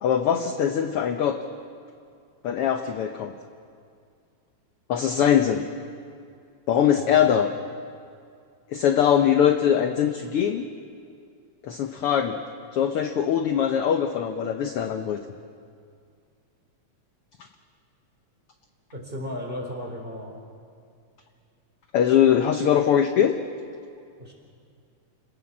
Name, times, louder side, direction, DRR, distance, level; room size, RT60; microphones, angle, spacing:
voice 1, 0.0-1.4 2.4-3.3 4.9-5.7 6.7-7.5 8.7-10.7 11.6-12.4 12.7-15.2 21.9-23.4, left 9 dB, 65° left, 7 dB, 1.5 m, -22 dB
voice 2, 6.9-7.4 18.9-20.3 24.2-24.3, left 1 dB, 15° right, 0 dB, 4.2 m, -35 dB
28.5 x 19.0 x 7.3 m, 2.3 s
omnidirectional pair, 3.3 m